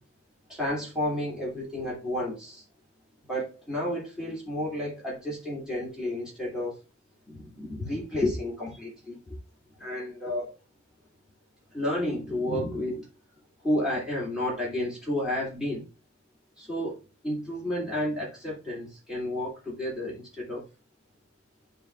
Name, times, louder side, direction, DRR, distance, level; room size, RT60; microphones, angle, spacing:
voice 1, 0.5-2.6 3.3-6.8 7.3-9.4 9.8-10.5 11.7-13.1 13.6-15.9 16.6-17.0 17.2-20.6, left 1 dB, 5° right, -5 dB, 2.6 m, -31 dB
11.5 x 4.0 x 2.4 m, 0.30 s
head